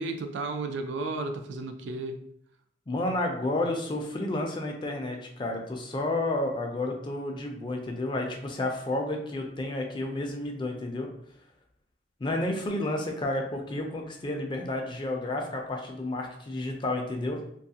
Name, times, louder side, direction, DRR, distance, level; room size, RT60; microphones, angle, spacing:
voice 1, 0.0-2.2, right 3 dB, 80° right, 6 dB, 0.3 m, -33 dB
voice 2, 2.9-11.1 12.2-17.4, left 2 dB, 25° left, 2 dB, 0.4 m, -31 dB
2.7 x 2.3 x 2.7 m, 0.71 s
head